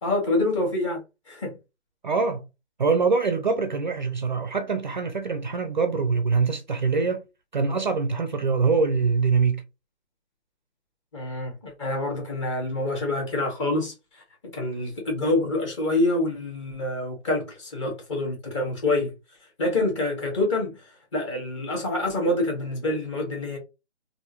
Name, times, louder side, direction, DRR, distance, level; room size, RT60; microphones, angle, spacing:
voice 1, 0.0-1.0 1.3-1.5 11.1-14.2 14.5-19.1 19.6-23.6, left 2 dB, 25° left, 1.4 m, -26 dB
voice 2, 2.0-2.5 2.8-7.2 7.5-9.6, right 4 dB, 40° right, 0.4 m, -24 dB
3.5 x 2.6 x 2.8 m
figure-of-eight pair, 150°, 35 cm